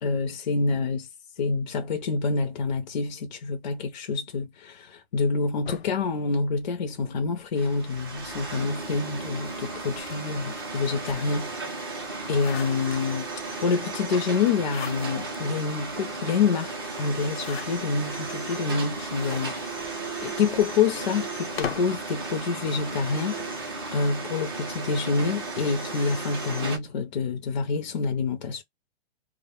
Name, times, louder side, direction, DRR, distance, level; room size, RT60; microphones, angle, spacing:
voice 1, 0.0-1.1 1.4-11.7 12.3-13.3 13.6-19.7 20.2-28.6, left 4 dB, 45° left, 0.5 m, -27 dB
sound 1, 5.6-7.2 8.1-11.6 12.0-13.4 14.4-15.4 15.9-16.0 16.2-16.3 17.2-18.1 18.8-22.0, left 7 dB, 75° left, 0.8 m, -41 dB
sound 2, 7.6-26.8, right 3 dB, 25° right, 0.5 m, -35 dB
2.1 x 2.0 x 3.0 m
hypercardioid pair, 180°, 31 cm